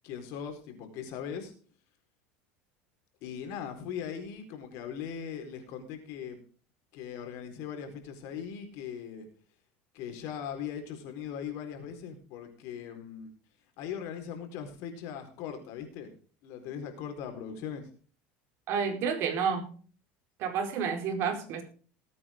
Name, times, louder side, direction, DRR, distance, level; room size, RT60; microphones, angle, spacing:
voice 1, 0.0-1.5 3.2-6.4 6.9-9.3 9.9-13.3 13.8-16.1 16.4-17.9, left 8 dB, 65° left, 6 dB, 4.3 m, -39 dB
voice 2, 18.7-19.7 20.4-21.6, right 6 dB, 55° right, 4 dB, 4.4 m, -30 dB
19.5 x 8.8 x 3.7 m, 0.42 s
supercardioid pair, 115°, 5 cm